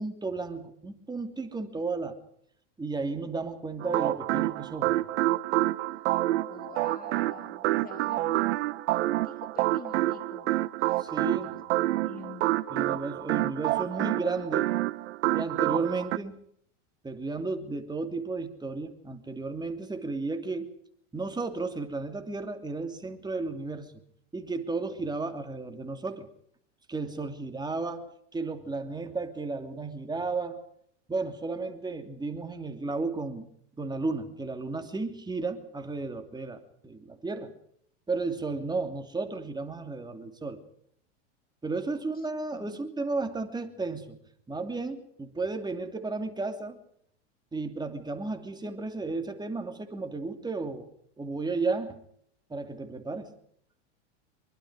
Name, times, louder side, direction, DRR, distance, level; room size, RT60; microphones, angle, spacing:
voice 1, 0.0-2.2 2.8-4.9 11.0-11.5 12.7-14.7 15.3-16.3 17.0-20.7 21.1-23.9 24.3-26.3 26.9-30.6 31.1-33.5 33.8-37.5 38.1-40.6 41.6-44.2 44.5-46.8 47.5-50.9 51.2-52.0 52.5-53.3, right 3 dB, 10° right, 6 dB, 2.9 m, -33 dB
sound 1, 3.8-16.2, right 17 dB, 65° right, 1.2 m, -28 dB
voice 2, 6.5-10.6 10.9-12.5 42.5-42.8, left 6 dB, 25° left, 9 dB, 2.5 m, -48 dB
25.5 x 23.5 x 4.9 m, 0.67 s
hypercardioid pair, 115°, 37 cm